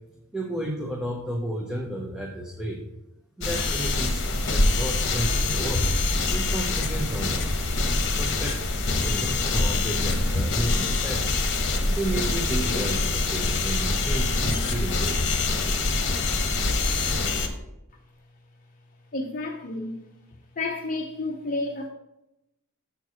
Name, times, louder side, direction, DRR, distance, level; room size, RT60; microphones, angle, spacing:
voice 1, 0.3-2.8 3.4-5.9 6.3-7.4 8.1-8.6 8.9-11.2 11.9-15.2, right 1 dB, 5° right, 0 dB, 0.7 m, -32 dB
sound 1, 3.4-17.5, left 2 dB, 55° left, 1.1 m, -25 dB
voice 2, 19.1-20.0 20.6-21.9, left 2 dB, 40° left, 1 dB, 0.7 m, -30 dB
7.0 x 4.5 x 6.1 m, 0.90 s
head